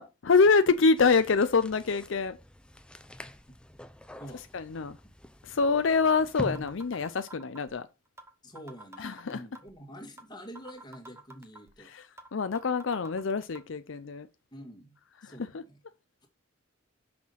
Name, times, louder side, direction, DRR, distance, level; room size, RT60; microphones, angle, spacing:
voice 1, 0.0-2.4 4.5-5.0 5.4-7.9 9.0-9.4 11.8-14.3 15.2-15.6, left 4 dB, 65° left, 0.5 m, -26 dB
sound 1, 1.0-7.2, equal, 5° left, 0.5 m, -44 dB
sound 2, 5.7-5.8 6.2-6.3 6.5-7.7 8.2-8.3 8.5-9.7 10.2-10.3 10.5-11.7 12.2-12.3 12.5-13.6, right 2 dB, 15° right, 1.1 m, -48 dB
voice 2, 8.4-11.9 14.5-15.0 15.2-15.8, equal, 20° left, 1.9 m, -46 dB
6.2 x 6.0 x 5.5 m
head